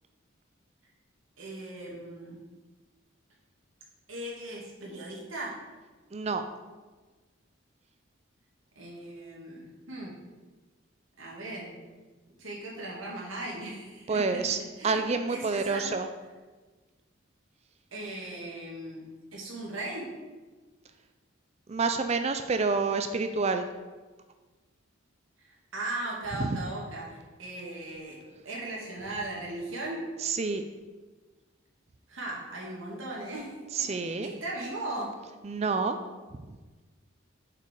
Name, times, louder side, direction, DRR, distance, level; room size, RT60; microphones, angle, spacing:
voice 1, 1.4-2.4 4.1-5.6 8.8-10.1 11.2-11.8 12.4-14.4 14.8-15.0 15.3-15.8 17.9-19.0 19.3-20.1 25.4-28.2 28.4-30.0 32.1-33.5 33.8-35.1, right 2 dB, 80° right, -4 dB, 2.4 m, -38 dB
voice 2, 6.1-6.4 14.1-14.6 14.8-16.1 21.7-23.7 26.4-26.6 30.2-30.6 33.7-34.3 35.4-36.0, right 4 dB, 30° right, 7 dB, 0.4 m, -28 dB
7.9 x 5.7 x 4.7 m, 1.3 s
head